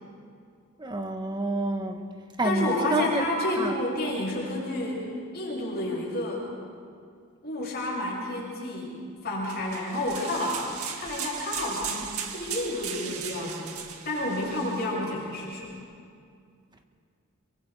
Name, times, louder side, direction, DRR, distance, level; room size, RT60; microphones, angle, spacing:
voice 1, 0.8-2.0 2.4-3.2 3.6-3.7, right 2 dB, 20° right, 5 dB, 1.4 m, -28 dB
voice 2, 2.4-5.0 5.3-6.4 7.4-10.6 10.9-13.8 14.0-15.8, left 1 dB, 45° left, -5 dB, 7.5 m, -30 dB
sound 1, 9.5-14.9, right 7 dB, 85° right, 1.9 m, -37 dB
27.5 x 23.5 x 4.9 m, 2.3 s
head